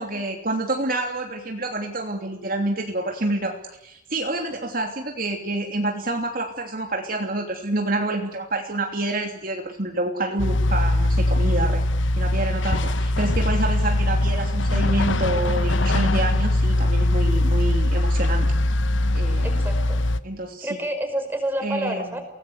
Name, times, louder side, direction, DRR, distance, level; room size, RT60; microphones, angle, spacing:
voice 1, 0.0-11.8 12.2-18.5 19.1-19.6 20.2-20.7 21.6-22.1, right 2 dB, 45° right, 2 dB, 3.0 m, -28 dB
sound 1, 10.4-20.2, left 1 dB, 75° left, 1.1 m, -21 dB
voice 2, 19.4-20.0 20.6-22.2, right 1 dB, 10° right, 5 dB, 5.3 m, -29 dB
29.0 x 19.5 x 8.2 m, 0.81 s
head